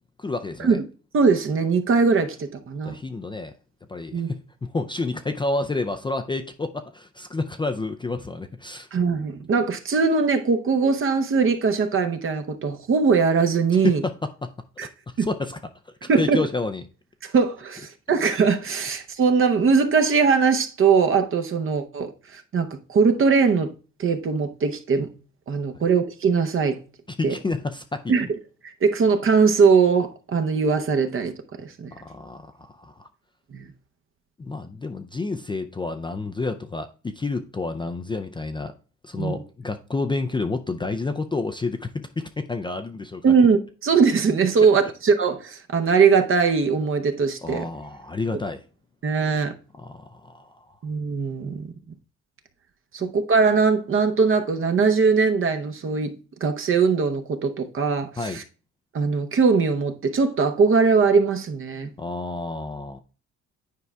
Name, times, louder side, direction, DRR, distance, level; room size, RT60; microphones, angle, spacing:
voice 1, 0.2-0.8 2.8-3.5 3.9-8.9 13.8-14.1 14.4-14.5 15.1-15.6 16.2-16.8 27.1-28.2 31.9-33.1 34.4-38.7 39.0-43.3 47.4-48.6 49.8-50.7 53.0-53.1 58.2-58.4 62.0-63.0, left 3 dB, 15° left, 0.4 m, -29 dB
voice 2, 1.1-3.0 4.1-4.3 8.9-14.0 14.8-14.9 15.2-15.3 16.1-16.4 17.2-23.7 24.0-25.1 25.5-26.8 27.2-27.3 28.1-28.3 28.8-31.3 31.6-31.9 33.5-33.7 39.2-39.4 43.2-47.6 49.0-49.5 50.8-51.7 52.9-56.1 56.4-58.4 58.9-61.9, right 5 dB, 45° right, 0.7 m, -21 dB
9.4 x 4.7 x 2.2 m
cardioid pair, 90°, 30 cm